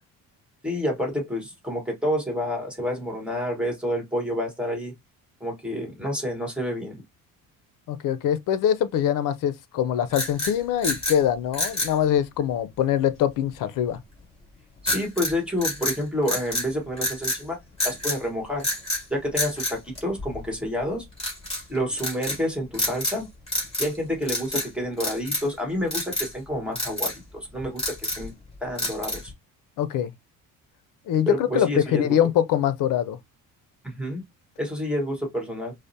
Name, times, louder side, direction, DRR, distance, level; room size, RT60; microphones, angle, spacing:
voice 1, 0.6-4.9 5.4-7.0 14.8-17.6 17.8-18.7 19.1-21.0 21.7-23.3 23.8-28.3 28.6-29.3 31.3-32.2 33.8-34.2 34.6-35.7, equal, 5° right, 1.4 m, -29 dB
voice 2, 7.9-14.0 29.8-30.1 31.1-33.2, left 10 dB, 65° left, 0.6 m, -23 dB
sound 1, 10.1-11.2 11.5-12.0 14.8-15.3 15.6-16.7 17.0-17.4 17.8-18.2 18.6-19.0 19.3-20.5 21.2-21.6 22.0-22.4 22.7-23.2 23.5-24.0 24.2-24.7 25.0-25.5 25.9-26.3 26.7-27.2 27.6-28.3 28.8-29.3, left 1 dB, 15° left, 2.4 m, -28 dB
4.8 x 2.1 x 2.7 m
cardioid pair, 120°, 36 cm